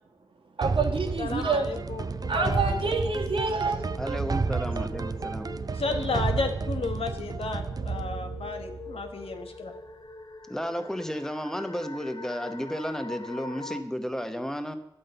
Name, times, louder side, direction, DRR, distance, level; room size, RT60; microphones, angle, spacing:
sound 1, 0.6-9.5, right 4 dB, 40° right, 0.4 m, -31 dB
voice 1, 0.6-1.7 2.3-3.8, right 4 dB, 65° right, 2 dB, 1.6 m, -27 dB
sound 2, 0.8-13.8, left 2 dB, 45° left, 0.8 m, -44 dB
voice 2, 1.2-2.8 5.7-9.7, left 4 dB, 85° left, 5 dB, 1.1 m, -33 dB
voice 3, 3.9-5.5 10.5-14.8, equal, 5° left, 8 dB, 0.9 m, -33 dB
10.5 x 5.5 x 7.8 m, 0.85 s
wide cardioid pair, 85°, 10 cm